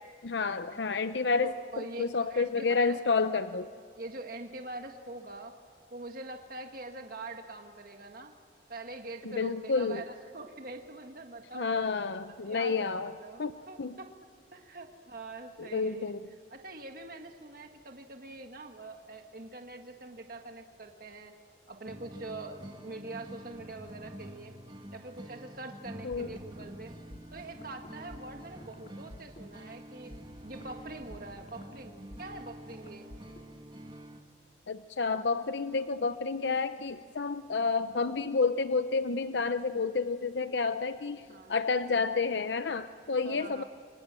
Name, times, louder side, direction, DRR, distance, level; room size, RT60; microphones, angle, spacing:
voice 1, 0.2-3.7 9.3-10.0 11.5-13.1 13.4-13.5 13.8-14.0 15.6-16.2 26.0-26.3 34.7-41.2 41.5-43.6, left 4 dB, 70° left, 10 dB, 0.7 m, -30 dB
voice 2, 1.4-3.0 3.3-3.4 4.0-5.5 5.9-8.3 8.7-11.7 12.4-14.1 14.5-16.1 16.5-21.3 21.7-24.5 24.9-26.9 27.3-30.1 30.4-33.1 41.3-41.5 43.2-43.6, right 2 dB, 50° right, 4 dB, 1.7 m, -44 dB
sound 1, 21.9-34.2, right 1 dB, 25° right, 1.7 m, -47 dB
sound 2, 26.1-33.7, left 1 dB, 45° left, 2.2 m, -53 dB
29.5 x 25.0 x 7.6 m, 2.5 s
head